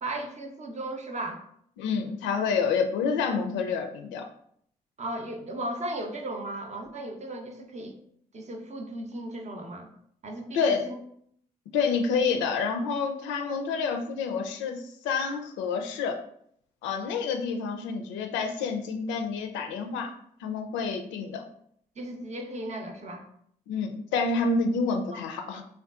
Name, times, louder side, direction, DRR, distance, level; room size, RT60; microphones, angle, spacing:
voice 1, 0.0-1.4 5.0-8.0 8.3-9.9 10.2-10.9 22.0-23.3 25.1-25.2, right 1 dB, 35° right, 4 dB, 0.6 m, -36 dB
voice 2, 1.8-4.3 10.5-10.8 11.7-16.2 16.8-20.1 20.4-21.4 23.7-25.6, left 5 dB, 70° left, 5 dB, 0.4 m, -28 dB
3.5 x 2.3 x 2.4 m, 0.67 s
hypercardioid pair, 40°, 20 cm